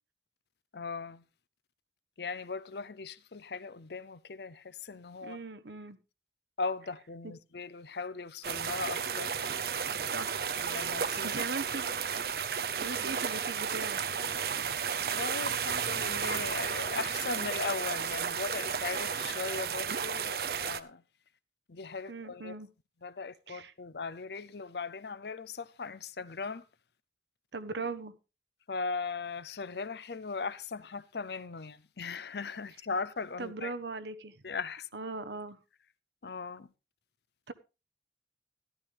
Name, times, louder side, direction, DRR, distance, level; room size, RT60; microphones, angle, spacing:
voice 1, 0.7-1.2 2.2-5.4 6.6-9.4 10.6-11.5 15.0-21.0 21.7-22.6 23.0-26.6 28.7-33.7 34.4-34.9 36.2-36.7, left 4 dB, 70° left, 0.6 m, -38 dB
voice 2, 5.2-6.0 7.2-7.3 10.0-10.5 11.2-11.9 12.8-14.0 22.1-22.7 23.5-23.7 27.5-28.1 33.4-34.3 34.9-35.6 37.5-37.6, right 3 dB, 80° right, 1.0 m, -39 dB
sound 1, 8.4-20.8, right 7 dB, 60° right, 0.7 m, -33 dB
13.5 x 12.0 x 3.4 m
head